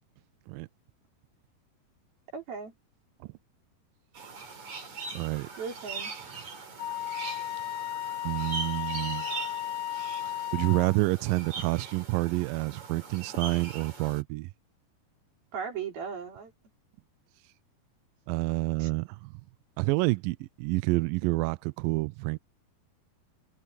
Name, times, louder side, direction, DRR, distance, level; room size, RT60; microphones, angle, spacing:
voice 1, 2.3-2.7 5.6-6.1 15.5-16.5 18.8-18.9, right 6 dB, 70° right, 6.8 m, -37 dB
sound 1, 4.1-14.2, right 4 dB, 45° right, 5.4 m, -41 dB
voice 2, 5.2-5.5 8.2-9.3 10.5-14.5 18.3-19.3 19.8-22.4, right 23 dB, 85° right, 2.0 m, -28 dB
Wind instrument woodwind instrument, 6.8-11.0, left 12 dB, 85° left, 3.5 m, -35 dB
omnidirectional pair, 4.5 m